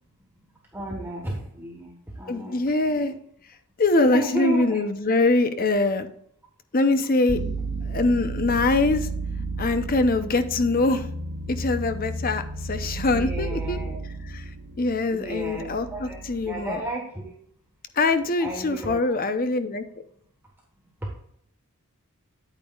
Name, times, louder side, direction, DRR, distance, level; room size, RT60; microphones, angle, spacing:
voice 1, 0.7-2.6 2.9-3.1 4.1-4.8 13.1-14.0 15.1-16.2 16.5-17.3 18.4-19.2, right 1 dB, 10° right, -2 dB, 1.3 m, -33 dB
voice 2, 2.3-3.1 3.8-6.1 6.7-7.4 7.8-9.1 9.6-11.1 11.5-14.5 14.8-16.8 18.0-19.8, left 2 dB, 40° left, 9 dB, 0.7 m, -23 dB
sound 1, 7.3-16.9, right 2 dB, 55° right, 0.8 m, -33 dB
8.9 x 8.9 x 2.4 m, 0.69 s
head